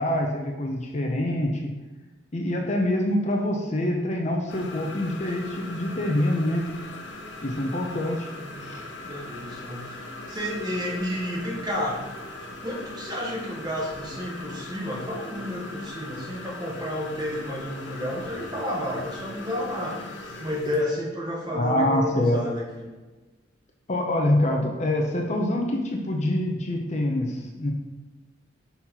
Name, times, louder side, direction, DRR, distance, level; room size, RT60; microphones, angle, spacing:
voice 1, 0.0-1.7 2.3-6.7 7.4-8.3 8.6-8.8 21.5-22.4 23.9-27.7, left 1 dB, 40° left, 0 dB, 0.7 m, -25 dB
sound 1, 4.5-20.8, left 2 dB, 80° left, 0.9 m, -40 dB
voice 2, 9.1-10.0 10.3-12.0 12.6-20.0 20.4-22.9, left 1 dB, 20° right, -3 dB, 1.3 m, -31 dB
5.7 x 4.1 x 4.4 m, 1.2 s
head